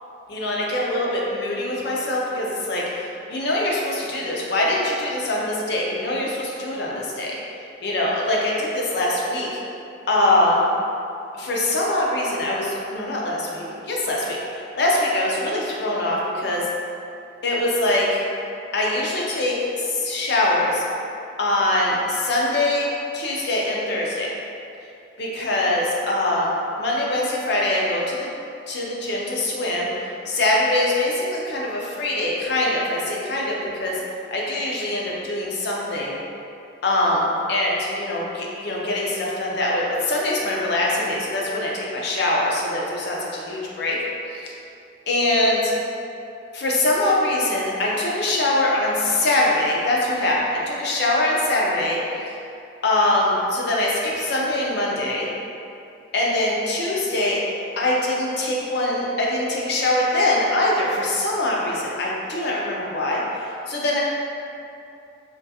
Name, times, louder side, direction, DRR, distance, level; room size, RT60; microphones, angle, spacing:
voice 1, 0.3-7.4 7.8-9.6 10.1-10.6 11.3-16.7 17.4-18.2 18.7-20.8 21.4-22.9 23.1-24.3 25.2-26.5 26.8-28.3 28.7-29.9 30.3-34.0 34.3-36.2 36.8-44.0 44.3-44.5 45.1-45.7 46.5-52.0 52.8-55.3 56.1-57.4 57.8-64.0, left 1 dB, 55° left, -4 dB, 0.5 m, -23 dB
3.6 x 2.3 x 2.7 m, 2.7 s
head